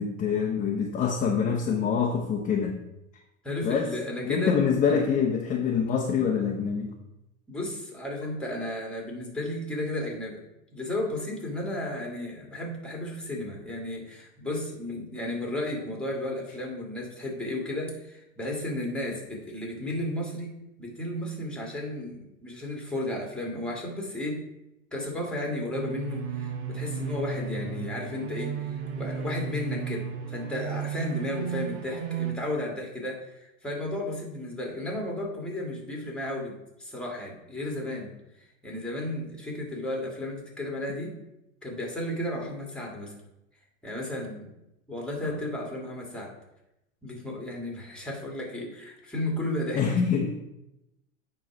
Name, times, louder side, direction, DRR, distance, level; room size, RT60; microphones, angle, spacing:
voice 1, 0.0-2.7 3.6-3.9 4.3-6.9 45.2-45.3 49.8-50.3, left 6 dB, 20° left, 2 dB, 0.7 m, -25 dB
voice 2, 3.4-4.6 4.9-5.0 7.5-10.4 10.7-20.5 20.8-24.4 24.9-38.1 38.6-41.1 41.6-43.1 43.8-44.5 44.9-46.3 47.0-49.8, left 1 dB, 5° left, -1 dB, 1.8 m, -33 dB
sound 1, 25.7-32.3, right 6 dB, 60° right, 1.2 m, -34 dB
9.1 x 3.1 x 5.8 m, 0.90 s
supercardioid pair, 135°, 36 cm